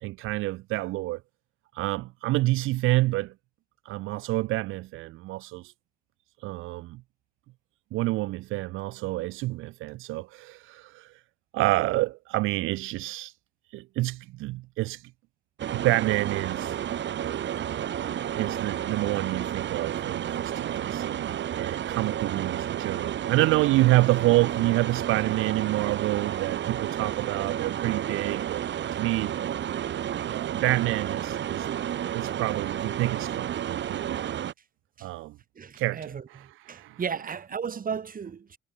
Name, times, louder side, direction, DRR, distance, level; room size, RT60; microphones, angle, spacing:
voice 1, 0.0-1.2 1.7-3.3 3.9-5.7 6.4-7.0 7.9-11.2 11.5-13.3 13.7-15.1 15.7-16.8 18.3-28.7 29.0-29.3 30.2-31.7 32.1-34.2 35.0-35.4 35.8-37.0, right 19 dB, 90° right, 0.5 m, -28 dB
sound 1, 15.6-34.5, right 10 dB, 65° right, 3.0 m, -31 dB
voice 2, 35.6-36.2 36.7-38.6, right 6 dB, 45° right, 3.9 m, -34 dB
cardioid pair, 90°, 20 cm